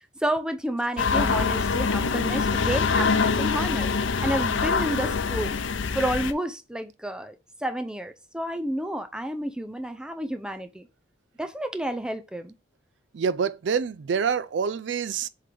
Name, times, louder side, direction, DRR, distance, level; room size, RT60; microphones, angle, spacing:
voice 1, 0.2-3.9 4.2-5.6 5.9-7.3 7.6-10.9 11.4-12.5, right 1 dB, 5° right, 0.5 m, -30 dB
sound 1, 1.0-6.3, left 5 dB, 80° left, 0.6 m, -24 dB
voice 2, 13.1-15.3, right 6 dB, 70° right, 0.4 m, -26 dB
7.5 x 3.8 x 3.4 m
head